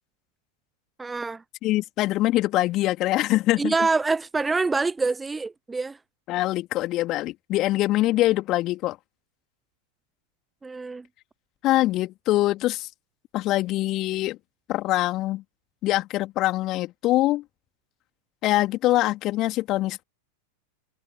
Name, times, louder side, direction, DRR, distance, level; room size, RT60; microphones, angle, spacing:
voice 1, 1.0-1.4 3.6-6.0 10.6-11.0, right 3 dB, 10° right, 0.7 m, -25 dB
voice 2, 1.6-3.7 6.3-9.0 11.6-12.9 13.3-14.4 14.7-15.4 15.8-17.4 18.4-20.0, left 16 dB, 35° left, 3.1 m, -23 dB
figure-of-eight pair, 90°, 0 cm